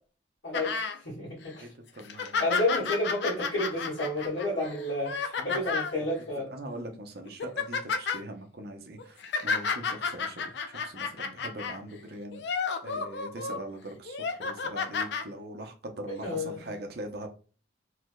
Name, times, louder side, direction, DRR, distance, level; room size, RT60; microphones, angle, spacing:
voice 1, 0.4-1.7 2.4-6.5 16.2-16.6, left 1 dB, 85° left, -8 dB, 1.6 m, -31 dB
sound 1, 0.5-1.0 1.4-1.5 2.0-6.0 6.7-6.9 7.2-8.2 9.0-11.8 12.3-13.6 14.0-15.2 16.2-16.3, left 5 dB, 60° left, 0.4 m, -32 dB
voice 2, 1.6-2.6 5.4-5.6 6.5-17.3, right 1 dB, 55° right, 4 dB, 0.6 m, -42 dB
3.2 x 3.2 x 2.2 m, 0.37 s
head